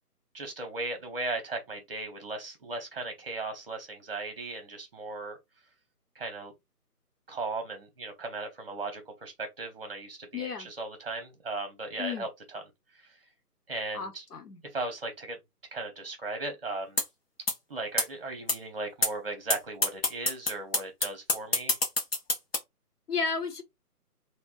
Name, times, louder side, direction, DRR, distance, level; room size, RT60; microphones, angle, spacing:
voice 1, 0.3-5.4 6.1-6.5 7.3-12.6 12.9-13.2 13.7-14.2 14.7-15.4 15.7-17.0 17.7-21.8, right 3 dB, 40° right, 0.8 m, -37 dB
voice 2, 10.3-10.7 12.0-12.3 13.9-14.6 23.1-23.6, left 5 dB, 75° left, 0.9 m, -33 dB
sound 1, 17.0-17.1 17.5-17.6 18.0-18.1 18.5-18.6 19.0-19.1 19.5-19.6 19.8-22.6, left 2 dB, 40° left, 0.6 m, -25 dB
2.6 x 2.1 x 2.3 m
figure-of-eight pair, 155°, 47 cm